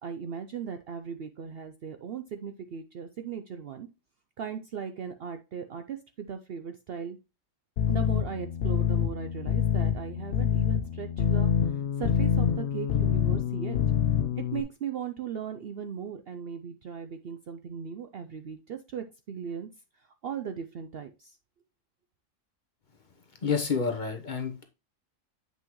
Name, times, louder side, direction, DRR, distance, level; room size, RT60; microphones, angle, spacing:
voice 1, 0.0-3.9 4.4-7.2 7.9-13.8 14.4-19.7 19.9-21.4, right 7 dB, 60° right, 0.6 m, -38 dB
sound 1, 7.8-14.6, left 9 dB, 60° left, 0.7 m, -26 dB
voice 2, 23.4-24.6, left 5 dB, 40° left, 1.1 m, -29 dB
7.8 x 5.4 x 3.0 m
omnidirectional pair, 1.4 m